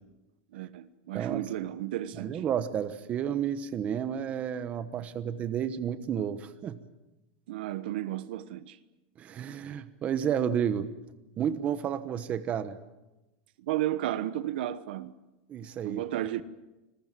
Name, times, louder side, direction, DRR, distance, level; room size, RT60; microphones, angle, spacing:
voice 1, 0.5-2.4 7.5-8.8 13.6-15.1 15.8-16.4, right 13 dB, 80° right, 1.2 m, -33 dB
voice 2, 1.1-1.5 2.2-6.8 9.2-10.9 11.4-12.8 15.5-16.0, right 8 dB, 25° right, 1.1 m, -31 dB
27.0 x 21.0 x 7.6 m
supercardioid pair, 165°, 5 cm